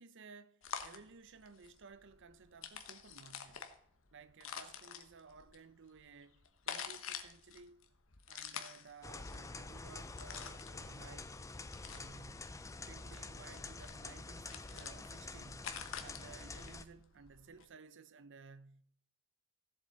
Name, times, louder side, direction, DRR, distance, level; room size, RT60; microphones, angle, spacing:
voice 1, 0.0-3.7 4.1-7.9 8.3-11.4 11.8-12.5 12.9-15.7 16.0-18.8, right 4 dB, 60° right, 0.6 m, -57 dB
sound 1, 0.6-17.6, left 7 dB, 65° left, 1.2 m, -49 dB
sound 2, 9.0-16.8, left 3 dB, 15° left, 0.5 m, -47 dB
16.0 x 7.6 x 4.1 m
head